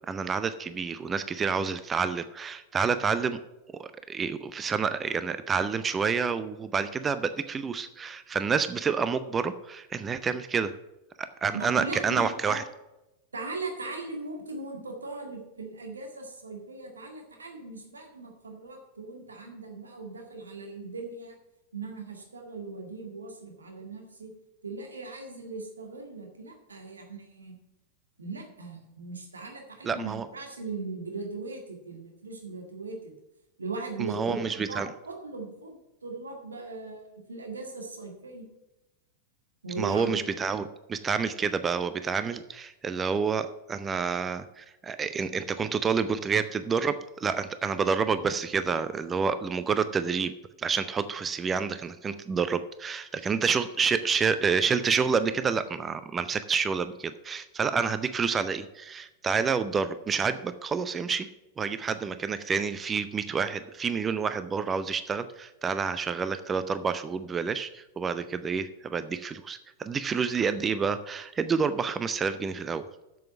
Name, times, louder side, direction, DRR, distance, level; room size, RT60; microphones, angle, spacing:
voice 1, 0.1-3.4 3.8-10.7 11.4-12.6 29.8-30.3 34.0-34.9 39.8-40.6 40.9-50.3 50.6-61.3 61.6-72.8, right 5 dB, 20° right, 12 dB, 0.6 m, -28 dB
voice 2, 11.5-12.6 13.3-21.3 21.7-24.3 24.6-27.6 28.2-33.1 33.6-34.4 34.7-35.8 36.0-38.4 39.6-40.1, right 3 dB, 75° right, 2 dB, 1.9 m, -39 dB
7.7 x 7.1 x 7.2 m, 0.96 s
figure-of-eight pair, 90°, 0 cm